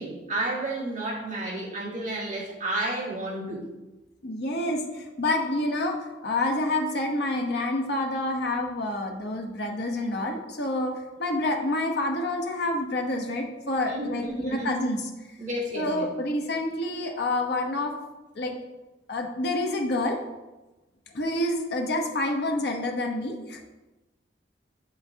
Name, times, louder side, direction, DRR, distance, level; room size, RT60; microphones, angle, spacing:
voice 1, 0.0-3.6 13.9-14.7 15.4-16.1, right 1 dB, 45° right, -8 dB, 1.9 m, -31 dB
voice 2, 4.2-6.0 6.2-10.9 11.2-15.1 15.7-17.9 18.4-18.6 19.1-20.2 21.1-23.6, left 1 dB, 65° left, 2 dB, 0.9 m, -28 dB
7.0 x 5.9 x 2.8 m, 1.1 s
head